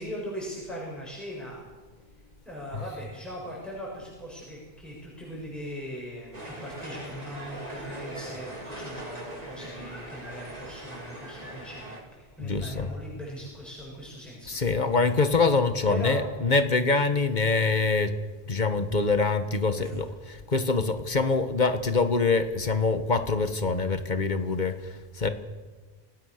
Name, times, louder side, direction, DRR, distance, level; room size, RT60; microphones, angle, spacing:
voice 1, 0.0-1.6 2.5-14.6 15.9-16.2 19.8-20.0, equal, ahead, -4 dB, 7.1 m, -39 dB
sound 1, 6.3-12.0, right 1 dB, 35° right, 4.4 m, -40 dB
voice 2, 12.4-12.9 14.5-18.1 18.5-25.3, left 4 dB, 45° left, 10 dB, 1.6 m, -25 dB
29.0 x 19.0 x 6.7 m, 1.3 s
omnidirectional pair, 1.1 m